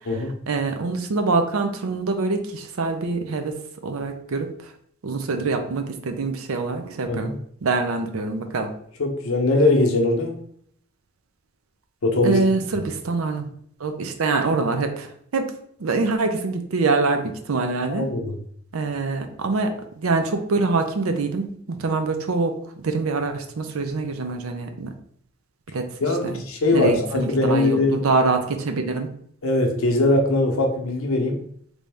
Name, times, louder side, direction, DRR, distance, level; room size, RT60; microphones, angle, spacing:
voice 1, 0.5-3.6 3.8-4.7 5.0-7.3 7.6-8.7 12.2-13.5 13.8-15.5 15.8-18.1 18.7-22.6 22.8-24.9 25.7-25.9 26.2-26.4 26.7-29.1, right 3 dB, 85° right, 7 dB, 0.5 m, -24 dB
voice 2, 9.0-10.4 12.0-12.4 17.9-18.3 26.0-28.0 29.4-31.4, left 2 dB, 85° left, 2 dB, 0.7 m, -21 dB
3.4 x 2.6 x 3.3 m, 0.65 s
head